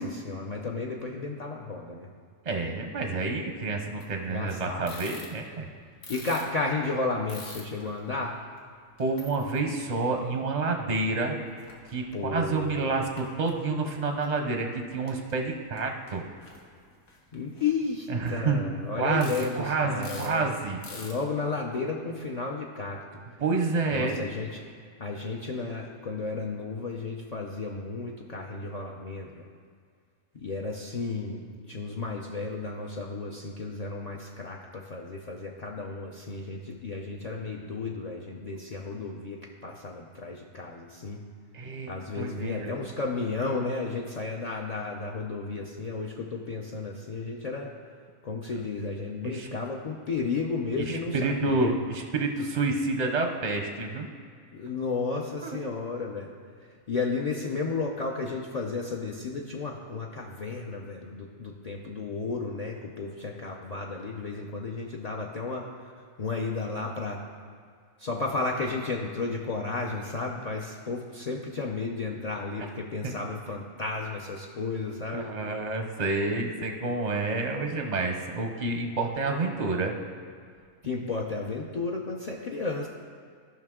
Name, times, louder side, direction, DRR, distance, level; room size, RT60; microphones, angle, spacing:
voice 1, 0.0-2.1 4.3-4.9 6.1-8.4 12.1-13.0 17.3-20.6 20.9-23.0 23.9-24.7 25.0-29.5 30.3-31.4 31.7-41.2 41.9-47.7 48.2-51.7 54.5-56.3 56.9-65.6 66.2-67.2 68.0-75.3 80.8-82.9, left 3 dB, 60° left, -1 dB, 0.4 m, -33 dB
voice 2, 2.4-5.7 9.0-11.4 11.9-16.2 18.1-18.6 18.9-20.8 23.4-24.2 41.5-42.8 49.2-49.5 50.9-54.1 75.1-79.9, right 3 dB, 45° right, 4 dB, 0.5 m, -29 dB
sound 1, 4.0-4.3 4.6-5.7 6.0-8.0 8.6-8.7 9.0-9.6 10.1-10.8 11.1-11.2 11.4-12.3 12.6-13.5 14.2-14.3 15.1-15.3 15.7-15.8 16.1-18.7 19.2-19.6 19.8-20.4 20.8-21.2, left 3 dB, 80° left, 1.6 m, -46 dB
14.0 x 5.8 x 3.6 m, 2.1 s
omnidirectional pair, 1.4 m